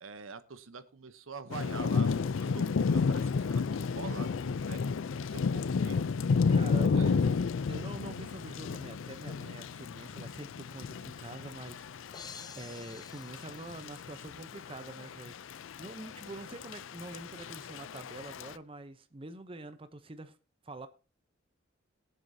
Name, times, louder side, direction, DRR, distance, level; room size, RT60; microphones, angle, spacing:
voice 1, 0.0-4.8 5.1-6.0 6.8-7.2, right 5 dB, 90° right, 0.9 m, -45 dB
Thunder / Rain, 1.5-18.5, left 5 dB, 75° left, 0.4 m, -32 dB
voice 2, 6.5-7.1 7.7-12.1 12.6-20.4 20.6-20.9, right 2 dB, 25° right, 0.7 m, -45 dB
sound 1, 12.1-14.4, left 5 dB, 20° left, 0.6 m, -50 dB
21.0 x 7.3 x 2.7 m
head